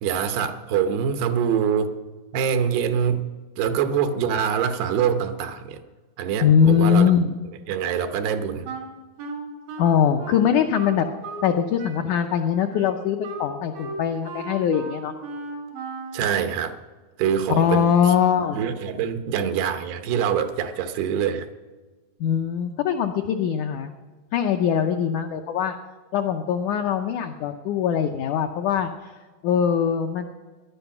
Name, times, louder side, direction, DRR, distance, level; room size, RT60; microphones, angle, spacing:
voice 1, 0.0-2.0 2.3-3.3 3.6-5.8 6.2-7.1 7.7-8.7 16.1-16.8 17.2-18.1 18.5-21.5, right 7 dB, 85° right, 8 dB, 3.0 m, -24 dB
voice 2, 6.4-7.3 9.8-11.1 11.4-15.1 17.5-18.6 22.2-23.9 24.3-25.8 26.1-29.1 29.4-30.3, left 8 dB, 90° left, 5 dB, 1.7 m, -22 dB
Wind instrument woodwind instrument, 8.6-11.5 11.8-16.3, right 2 dB, 65° right, 3.9 m, -36 dB
18.5 x 11.0 x 5.9 m, 1.3 s
omnidirectional pair, 4.5 m